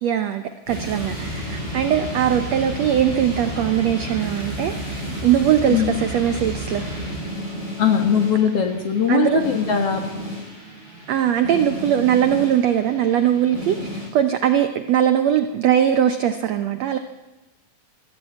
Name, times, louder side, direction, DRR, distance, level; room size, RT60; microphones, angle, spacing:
voice 1, 0.0-6.8 9.1-9.4 11.1-17.0, right 10 dB, 80° right, 9 dB, 1.5 m, -20 dB
sound 1, 0.7-14.1, equal, 10° left, 7.9 m, -31 dB
voice 2, 7.8-10.0, left 8 dB, 55° left, 5 dB, 1.8 m, -20 dB
20.0 x 15.0 x 8.8 m, 1.1 s
omnidirectional pair, 4.2 m